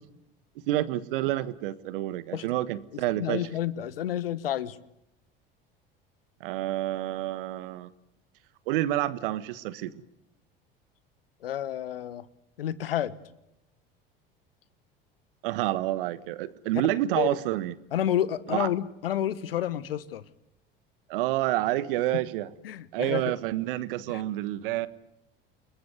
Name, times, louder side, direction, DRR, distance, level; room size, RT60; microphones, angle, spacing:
voice 1, 0.7-3.4 6.4-7.9 8.7-10.0 15.4-17.7 18.5-18.7 21.1-22.5 22.9-24.9, right 15 dB, 65° right, 16 dB, 1.4 m, -28 dB
voice 2, 2.9-4.8 11.4-12.2 12.6-13.1 17.2-17.3 17.9-20.2 22.6-23.3 24.1-24.2, left 11 dB, 75° left, 18 dB, 1.2 m, -30 dB
29.0 x 21.5 x 9.4 m, 0.86 s
figure-of-eight pair, 70°, 29 cm